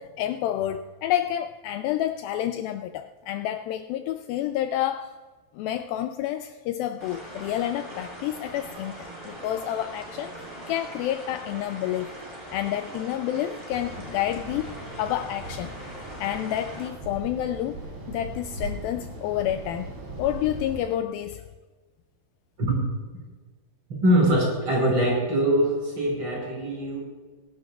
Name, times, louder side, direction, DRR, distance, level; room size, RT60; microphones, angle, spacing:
voice 1, 0.0-5.1 5.5-12.1 12.5-15.7 16.2-17.8 18.1-19.9 20.2-21.5, left 12 dB, 90° left, 8 dB, 2.1 m, -29 dB
sound 1, 7.0-16.9, right 1 dB, 15° right, 4.3 m, -41 dB
sound 2, 13.7-20.8, right 2 dB, 50° right, 4.4 m, -39 dB
voice 2, 24.0-27.0, right 1 dB, 30° right, -2 dB, 4.6 m, -22 dB
22.5 x 11.5 x 2.4 m, 1.4 s
omnidirectional pair, 4.7 m